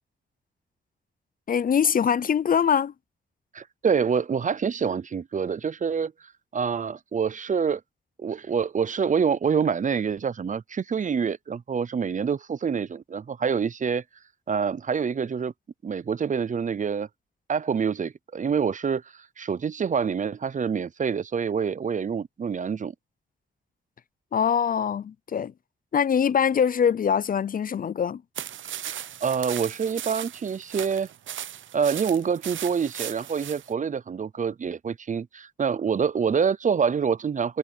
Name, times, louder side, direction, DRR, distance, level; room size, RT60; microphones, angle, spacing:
voice 1, 1.5-2.9 24.3-25.5 25.9-28.2, left 7 dB, 45° left, 0.5 m, -23 dB
voice 2, 3.5-7.8 8.2-14.0 14.5-15.5 15.8-17.1 17.5-22.9 28.8-29.0 29.2-31.1 31.7-37.6, right 6 dB, 40° right, 0.6 m, -26 dB
sound 1, 28.4-33.7, right 10 dB, 85° right, 0.8 m, -37 dB
cardioid pair, 85°, 19 cm